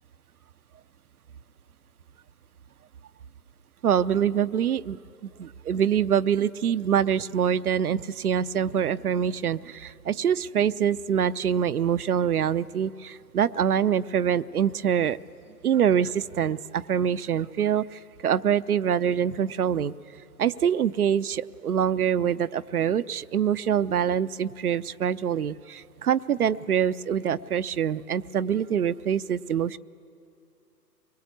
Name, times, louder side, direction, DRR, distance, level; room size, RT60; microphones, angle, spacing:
voice 1, 3.8-15.2 15.6-19.9 20.4-29.8, right 8 dB, 60° right, 14 dB, 0.7 m, -25 dB
24.0 x 22.0 x 8.3 m, 2.5 s
figure-of-eight pair, 140°, 50 cm